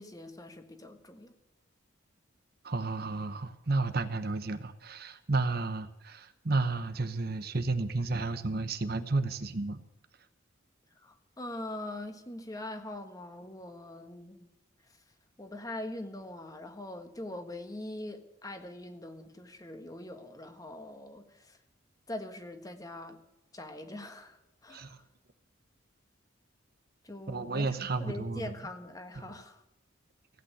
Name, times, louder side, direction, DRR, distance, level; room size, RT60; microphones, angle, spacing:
voice 1, 0.0-1.3 10.9-14.5 15.4-21.6 22.1-23.2 23.5-25.0 27.0-29.6, left 1 dB, 15° left, 6 dB, 1.5 m, -43 dB
voice 2, 2.6-9.8 24.7-25.0 27.3-28.5, right 3 dB, 50° right, 10 dB, 0.9 m, -32 dB
17.0 x 9.0 x 7.9 m, 0.91 s
head